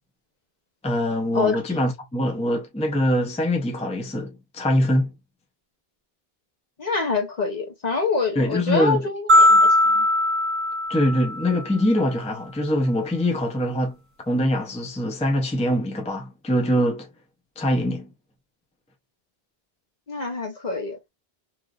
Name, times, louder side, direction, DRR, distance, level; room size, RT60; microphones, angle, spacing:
voice 1, 0.8-5.1 8.4-9.0 10.9-14.0 14.3-17.1 17.6-18.1, left 1 dB, 10° left, 0.5 m, -23 dB
voice 2, 6.8-10.1 20.1-21.0, left 4 dB, 45° left, 0.8 m, -26 dB
sound 1, 9.3-11.7, left 1 dB, 45° right, 1.3 m, -18 dB
3.2 x 2.5 x 2.3 m
omnidirectional pair, 1.0 m